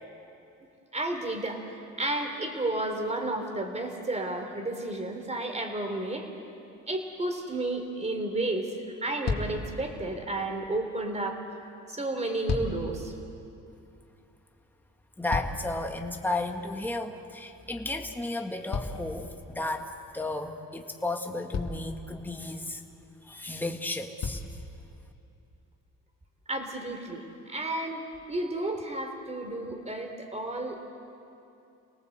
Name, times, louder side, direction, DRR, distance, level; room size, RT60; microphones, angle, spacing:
voice 1, 0.9-6.3 6.9-8.8 9.0-11.4 11.9-13.1 26.5-30.9, right 2 dB, 20° right, 4 dB, 3.7 m, -32 dB
sound 1, 6.8-7.0 8.4-8.5 8.8-9.0 9.2-9.7 12.1-13.0 14.8-15.9 18.7-19.7 20.9-21.0 21.5-22.0 23.4-23.5 24.2-24.6 25.4-25.5, left 4 dB, 60° left, 2.5 m, -33 dB
voice 2, 15.2-22.8 23.2-24.4, left 2 dB, 5° left, 3 dB, 1.8 m, -33 dB
29.5 x 18.5 x 8.2 m, 2.7 s
cardioid pair, 90°, 30 cm